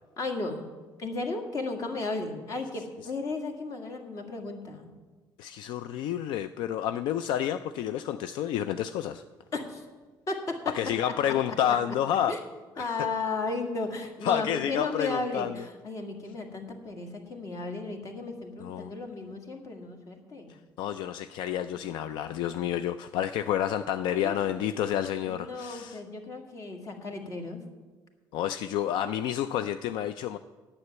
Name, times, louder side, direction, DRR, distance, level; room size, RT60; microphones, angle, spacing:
voice 1, 0.2-0.7 1.0-4.9 9.5-9.8 10.3-10.7 11.0-11.3 12.3-12.4 12.8-20.6 24.1-24.4 25.3-27.6, left 3 dB, 45° left, 3 dB, 2.0 m, -34 dB
voice 2, 5.4-9.2 10.7-12.3 12.8-12.9 14.2-15.6 18.6-18.9 20.8-26.0 28.3-30.4, left 10 dB, 80° left, 11 dB, 0.4 m, -29 dB
9.7 x 7.2 x 9.2 m, 1.3 s
cardioid pair, 135°, 8 cm